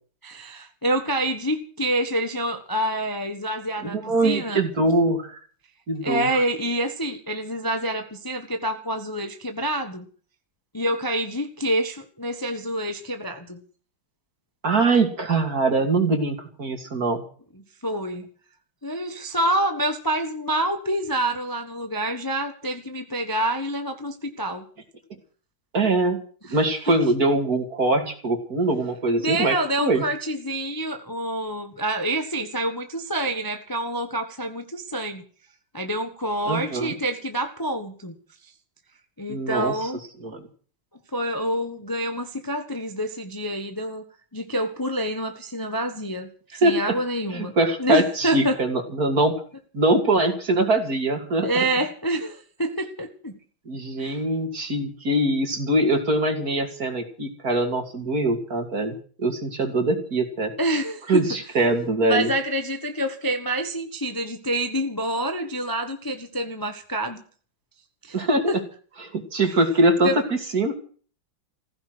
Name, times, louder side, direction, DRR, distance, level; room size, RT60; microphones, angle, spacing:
voice 1, 0.2-4.6 6.0-10.0 10.7-13.6 17.8-18.2 18.8-24.6 26.5-26.6 29.2-35.2 35.7-38.1 39.2-40.0 41.1-44.0 44.3-46.3 46.6-47.5 47.8-48.6 51.4-53.3 54.0-54.2 60.6-61.2 62.0-67.2 68.0-68.2 68.5-68.6 70.0-70.2, right 1 dB, 15° left, 6 dB, 1.1 m, -27 dB
voice 2, 3.8-5.4 5.9-6.3 14.6-17.2 25.7-26.2 26.5-30.0 36.5-36.9 39.3-39.9 40.2-40.5 46.6-47.0 47.3-49.4 49.7-51.7 53.7-60.5 61.1-62.3 68.1-68.5 69.0-70.7, right 2 dB, 45° right, 5 dB, 3.1 m, -23 dB
15.5 x 15.0 x 6.2 m, 0.43 s
omnidirectional pair, 2.2 m